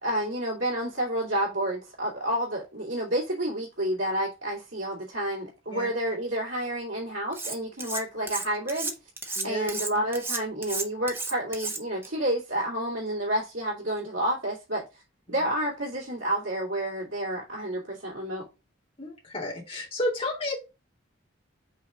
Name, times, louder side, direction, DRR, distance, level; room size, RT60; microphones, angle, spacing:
voice 1, 0.0-8.9 9.2-15.0 15.3-18.5, right 1 dB, 75° right, 2.4 m, -30 dB
Cutlery silverware, 7.3-8.0 8.3-12.1, right 3 dB, 10° right, 0.8 m, -33 dB
voice 2, 9.4-9.7 19.0-20.6, left 1 dB, 30° left, 2.5 m, -31 dB
5.6 x 4.1 x 4.9 m
head